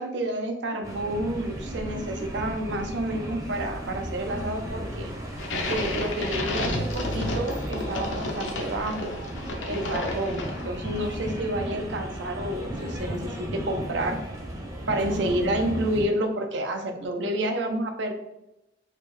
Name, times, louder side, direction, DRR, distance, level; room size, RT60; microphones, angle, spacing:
voice 1, 0.0-5.1 5.7-9.2 9.7-14.2 14.9-18.1, right 1 dB, 70° right, 5 dB, 0.6 m, -29 dB
sound 1, 0.8-16.1, equal, 20° right, 0.7 m, -35 dB
sound 2, 1.8-2.5 2.8-2.9 3.1-3.2 3.5-3.6 3.8-4.4 4.7-4.8 5.0-5.1 5.4-6.2 6.5-6.6 6.9-7.0 7.2-7.3 7.6-8.1 8.4-8.5 8.8-8.9 9.1-10.0 10.3-10.4 10.6-10.7 11.0-11.1, left 2 dB, 30° left, 0.4 m, -42 dB
sound 3, 5.4-10.9, left 2 dB, 85° left, 0.8 m, -31 dB
4.1 x 2.5 x 3.2 m, 0.90 s
head